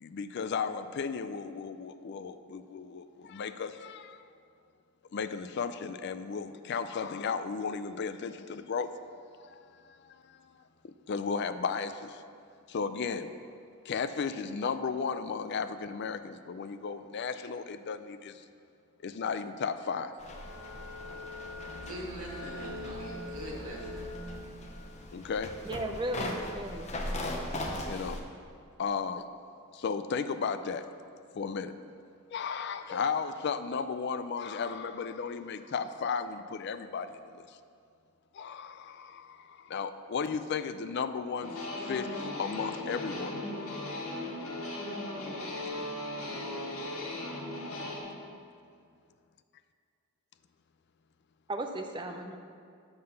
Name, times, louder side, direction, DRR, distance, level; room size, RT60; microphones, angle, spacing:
voice 1, 0.0-4.3 5.1-8.9 9.3-10.5 10.8-12.2 12.7-13.3 13.8-18.4 19.0-20.1 25.1-25.5 27.9-28.2 28.8-29.3 29.7-30.9 31.3-31.7 32.3-37.6 38.3-41.6 41.9-43.3, left 5 dB, 50° left, 11 dB, 0.4 m, -35 dB
sound 1, 20.2-28.2, left 1 dB, 30° left, 0.8 m, -39 dB
voice 2, 21.8-24.1, right 1 dB, 85° right, -5 dB, 1.9 m, -42 dB
voice 3, 25.7-26.9 51.5-52.4, right 1 dB, 20° right, 5 dB, 0.5 m, -35 dB
sound 2, 41.4-48.0, left 1 dB, 75° left, 1.8 m, -37 dB
7.7 x 5.6 x 6.6 m, 2.3 s
head